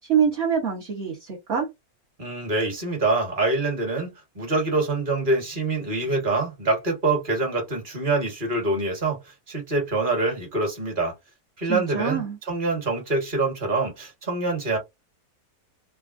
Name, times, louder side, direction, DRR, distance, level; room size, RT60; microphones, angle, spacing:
voice 1, 0.0-1.7 11.6-12.4, right 7 dB, 50° right, 1.1 m, -25 dB
voice 2, 2.2-9.2 9.5-11.1 11.6-14.8, right 3 dB, 35° right, 1.5 m, -25 dB
3.4 x 2.2 x 2.4 m
omnidirectional pair, 1.6 m